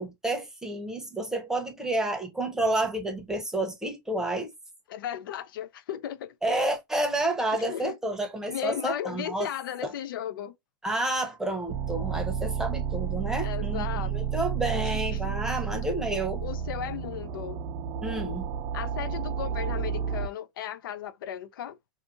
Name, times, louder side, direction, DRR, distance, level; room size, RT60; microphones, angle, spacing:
voice 1, 0.0-4.5 6.4-9.5 9.8-9.9 10.8-13.9 14.1-16.4 18.0-18.5, right 1 dB, 5° right, 0.7 m, -30 dB
voice 2, 4.9-6.3 7.7-8.0 8.5-10.5 13.4-14.1 14.8-15.4 16.4-17.6 18.7-21.8, left 10 dB, 75° left, 0.4 m, -35 dB
sound 1, 11.7-20.3, right 7 dB, 35° right, 0.4 m, -31 dB
2.6 x 2.5 x 2.4 m
hypercardioid pair, 130°, 11 cm